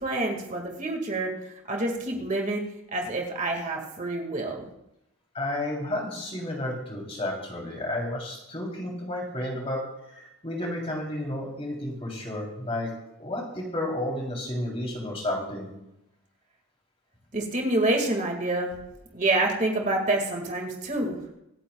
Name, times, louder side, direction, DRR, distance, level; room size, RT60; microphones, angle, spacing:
voice 1, 0.0-1.3 1.7-2.6 2.9-4.6 17.3-18.7 19.1-21.2, right 2 dB, 35° right, 2 dB, 2.1 m, -27 dB
voice 2, 5.3-12.9 13.2-15.7, left 1 dB, 25° left, -1 dB, 3.4 m, -32 dB
25.5 x 10.0 x 2.4 m, 0.85 s
head